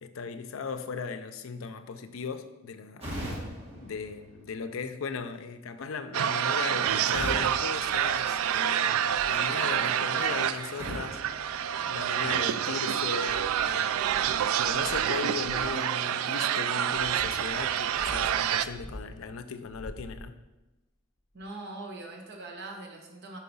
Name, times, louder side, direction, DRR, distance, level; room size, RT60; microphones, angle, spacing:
voice 1, 0.0-3.1 3.8-11.5 11.9-14.3 14.6-20.4, left 5 dB, 70° left, 0.5 m, -37 dB
sound 1, 3.0-5.0 7.1-8.8 10.8-12.4, equal, 30° right, 1.9 m, -40 dB
sound 2, 6.1-18.6, right 9 dB, 80° right, 0.3 m, -28 dB
sound 3, 8.5-8.6 9.0-9.5 10.9-11.0 11.8-12.4 12.9-15.8 16.5-19.3 19.6-20.6 21.4-21.5, equal, 20° left, 1.0 m, -47 dB
voice 2, 21.3-23.4, right 2 dB, 50° right, 1.1 m, -42 dB
4.7 x 4.6 x 5.4 m
head